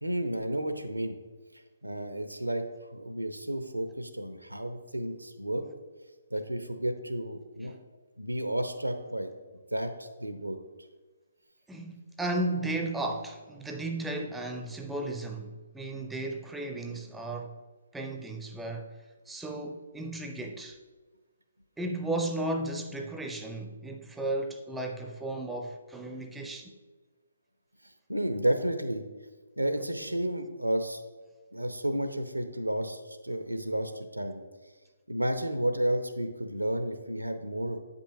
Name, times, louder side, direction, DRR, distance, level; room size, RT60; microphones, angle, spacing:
voice 1, 0.0-1.2 1.8-2.6 2.9-5.6 6.3-7.7 8.2-9.3 9.7-9.9 10.2-10.6 28.1-29.0 29.6-31.0 31.5-34.4 35.1-37.8, right 1 dB, 85° right, 0.7 m, -31 dB
voice 2, 11.7-17.6 17.9-18.9 19.3-20.8 21.8-26.7 30.3-30.4, right 2 dB, 5° right, 0.4 m, -34 dB
8.4 x 5.4 x 2.7 m
figure-of-eight pair, 135°, 0 cm